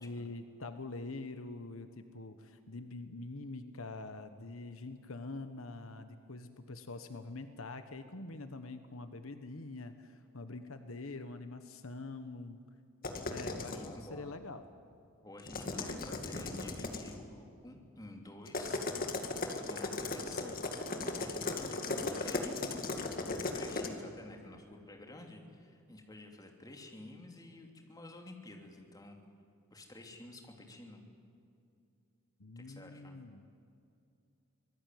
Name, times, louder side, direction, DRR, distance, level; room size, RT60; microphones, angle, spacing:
voice 1, 0.0-12.6 13.2-13.8 14.1-14.6 32.4-33.5, left 3 dB, 70° left, 9 dB, 1.2 m, -45 dB
sound 1, 13.0-13.9 15.4-17.1 18.5-23.9, left 3 dB, 40° left, 2.2 m, -37 dB
voice 2, 13.7-14.3 15.2-18.8 19.5-20.6 21.1-22.9 23.5-29.2 29.7-31.0 32.5-33.1, left 1 dB, 15° left, 2 dB, 3.0 m, -51 dB
25.5 x 19.0 x 9.4 m, 2.5 s
head